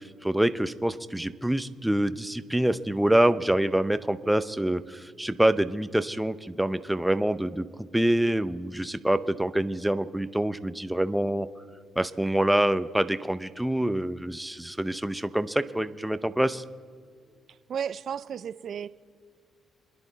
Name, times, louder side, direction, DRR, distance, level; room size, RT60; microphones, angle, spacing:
voice 1, 0.0-7.7 7.9-11.5 12.0-16.6, right 1 dB, 5° right, 0.6 m, -26 dB
voice 2, 17.5-18.9, right 8 dB, 60° right, 0.5 m, -34 dB
27.0 x 10.5 x 4.1 m
cardioid pair, 90°, 0 cm